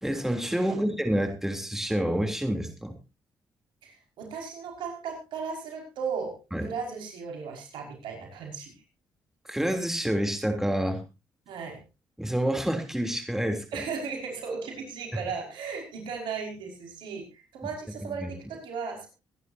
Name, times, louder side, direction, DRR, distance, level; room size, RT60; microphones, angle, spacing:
voice 1, 0.0-2.9 6.5-6.7 9.4-11.0 12.2-13.8 15.1-15.2 18.2-18.3, right 1 dB, 5° right, 6 dB, 3.2 m, -28 dB
voice 2, 3.8-8.7 11.5-11.8 13.7-19.1, right 5 dB, 80° right, 2 dB, 5.4 m, -36 dB
24.0 x 11.0 x 2.8 m, 0.27 s
supercardioid pair, 60°, 8 cm